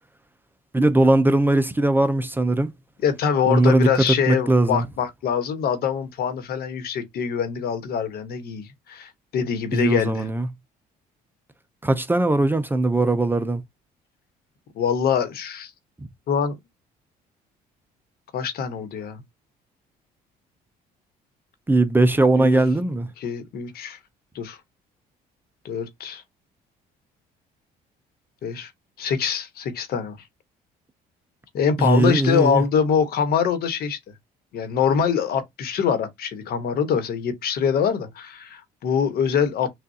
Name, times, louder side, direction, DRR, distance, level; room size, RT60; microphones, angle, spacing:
voice 1, 0.7-2.7 3.4-4.8 9.7-10.5 11.8-13.6 21.7-23.1 31.8-32.6, right 2 dB, 10° right, 0.5 m, -19 dB
voice 2, 3.0-10.3 14.7-15.7 16.3-16.6 18.3-19.2 22.4-22.6 23.2-24.0 24.3-24.6 25.6-26.2 28.4-28.7 29.0-30.2 31.5-34.0 34.5-39.7, left 7 dB, 65° left, 1.2 m, -24 dB
6.3 x 2.5 x 2.7 m
cardioid pair, 110°, 17 cm